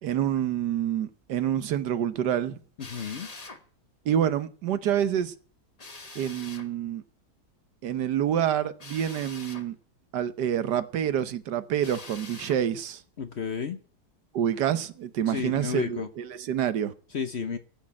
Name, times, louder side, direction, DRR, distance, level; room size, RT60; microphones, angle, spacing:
voice 1, 0.0-2.6 4.0-5.3 6.1-7.0 7.8-9.8 10.1-13.0 14.3-16.9, right 10 dB, 85° right, 1.5 m, -27 dB
voice 2, 2.8-3.3 13.2-13.8 15.3-16.1 17.1-17.6, left 6 dB, 50° left, 0.9 m, -32 dB
Drill, 2.8-3.6 5.8-6.7 8.8-9.7 11.8-12.6, left 3 dB, 25° left, 1.2 m, -44 dB
15.5 x 6.4 x 8.7 m
omnidirectional pair, 1.8 m